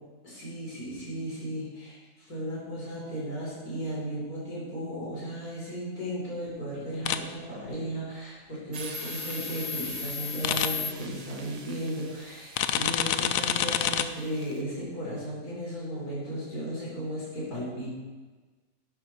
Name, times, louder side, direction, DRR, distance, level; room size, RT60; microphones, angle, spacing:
voice 1, 0.2-17.9, equal, 90° left, -7 dB, 4.3 m, -35 dB
sound 1, 7.1-7.2 10.4-10.7 12.6-14.0, left 10 dB, 70° left, 1.0 m, -26 dB
sound 2, 8.7-14.6, left 4 dB, 35° right, 0.7 m, -38 dB
11.5 x 8.4 x 4.4 m, 1.3 s
omnidirectional pair, 1.6 m